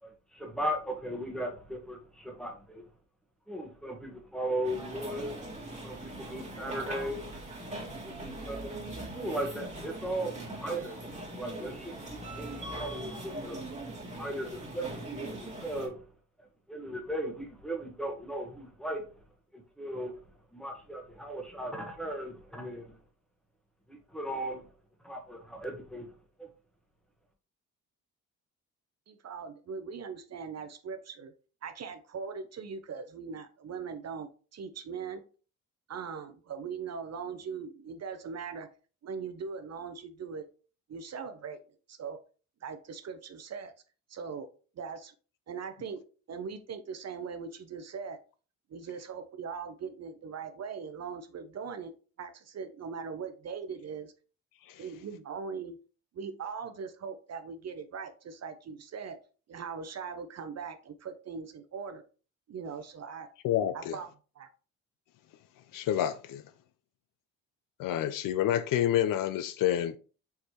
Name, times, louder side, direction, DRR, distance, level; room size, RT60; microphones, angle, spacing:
voice 1, 0.0-2.9 3.5-5.4 5.8-7.4 7.7-8.8 9.1-13.7 14.1-16.1 16.7-19.1 19.5-20.2 20.5-23.0 23.9-24.6 25.0-26.1 26.4-26.5, right 1 dB, ahead, 1.3 m, -37 dB
sound 1, 4.6-15.9, right 1 dB, 20° right, 1.9 m, -41 dB
voice 2, 29.1-31.3 31.6-35.2 35.9-38.7 39.0-40.5 40.9-41.6 41.9-42.2 42.6-43.7 44.1-44.5 44.8-45.1 45.5-46.0 46.3-48.2 48.7-51.9 52.2-54.1 54.8-55.8 56.1-59.2 59.5-62.0 62.5-63.3 63.7-64.1 64.4-64.5, right 6 dB, 45° right, 0.6 m, -40 dB
voice 3, 63.4-63.9 65.7-66.4 67.8-70.0, left 11 dB, 65° left, 0.5 m, -28 dB
4.7 x 3.1 x 2.9 m
supercardioid pair, 65°, 36 cm